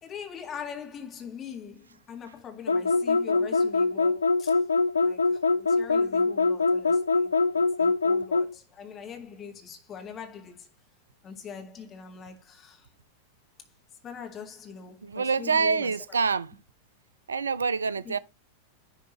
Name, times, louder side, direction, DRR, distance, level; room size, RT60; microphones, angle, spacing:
voice 1, 0.0-4.6 4.9-10.7 11.2-12.9 14.0-16.2 18.0-18.2, left 7 dB, 25° left, 1.8 m, -43 dB
sound 1, 2.7-8.5, left 3 dB, 75° left, 0.3 m, -23 dB
voice 2, 15.0-16.6 17.3-18.2, right 5 dB, 75° right, 0.4 m, -26 dB
10.5 x 3.6 x 3.1 m
figure-of-eight pair, 90°, 0 cm